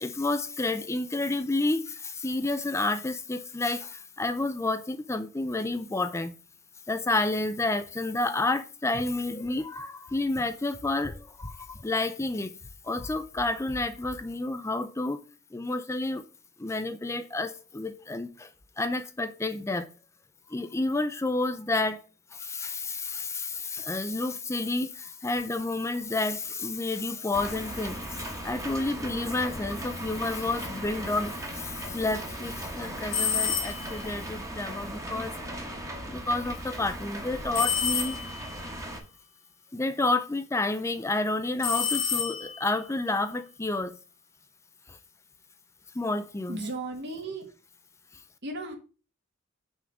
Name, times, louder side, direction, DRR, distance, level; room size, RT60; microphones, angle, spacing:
voice 1, 0.0-6.3 6.9-12.6 12.8-15.2 15.5-16.2 16.6-18.5 18.8-19.9 20.5-22.0 22.3-35.3 36.1-38.2 39.7-44.0 45.9-46.6, left 2 dB, 15° left, 0.4 m, -30 dB
sound 1, 27.3-39.0, right 1 dB, 15° right, 1.2 m, -38 dB
sound 2, 33.1-34.0 37.5-38.5 41.6-42.7, left 7 dB, 70° left, 2.0 m, -29 dB
voice 2, 46.5-47.5 48.4-48.7, right 2 dB, 55° right, 1.5 m, -35 dB
5.8 x 3.8 x 6.1 m
head